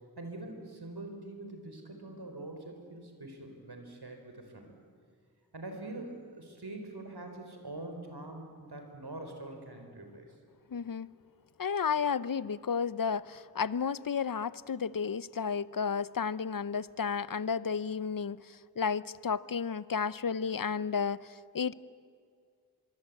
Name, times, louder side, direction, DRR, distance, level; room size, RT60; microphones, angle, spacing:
voice 1, 0.2-4.7 5.5-10.3, right 2 dB, 80° right, 4 dB, 4.3 m, -44 dB
voice 2, 10.7-11.1 11.6-21.7, left 6 dB, 60° left, 18 dB, 0.7 m, -32 dB
25.5 x 23.0 x 8.4 m, 2.2 s
wide cardioid pair, 55°, 38 cm